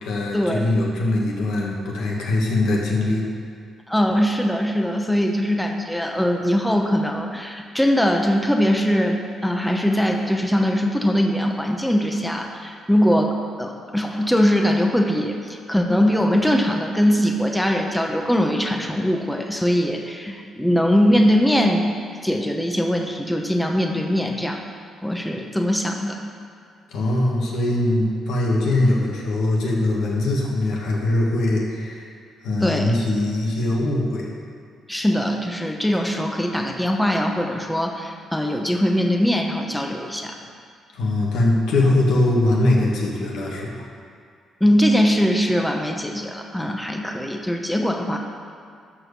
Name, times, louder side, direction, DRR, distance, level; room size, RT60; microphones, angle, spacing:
voice 1, 0.0-3.2 26.9-32.1 32.4-34.3 40.9-43.8, left 2 dB, 80° left, -2 dB, 2.0 m, -21 dB
voice 2, 3.9-21.9 22.2-24.6 25.0-26.2 32.6-32.9 34.9-40.4 44.6-48.2, equal, 5° left, 2 dB, 0.9 m, -21 dB
12.5 x 4.5 x 6.7 m, 2.2 s
cardioid pair, 90°, 0 cm